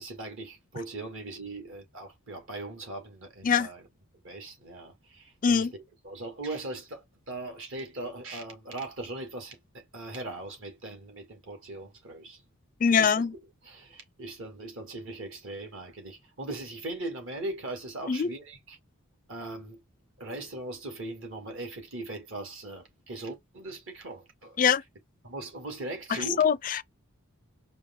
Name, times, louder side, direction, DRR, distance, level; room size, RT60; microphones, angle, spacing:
voice 1, 0.0-3.8 4.2-5.7 6.0-12.4 13.0-13.3 13.6-18.8 19.3-19.8 20.2-24.6 25.2-26.5, right 2 dB, 60° right, 2.2 m, -39 dB
voice 2, 12.8-13.3 18.1-18.3 24.6-24.8 26.4-26.8, left 6 dB, 40° left, 0.4 m, -23 dB
4.9 x 2.4 x 3.9 m
head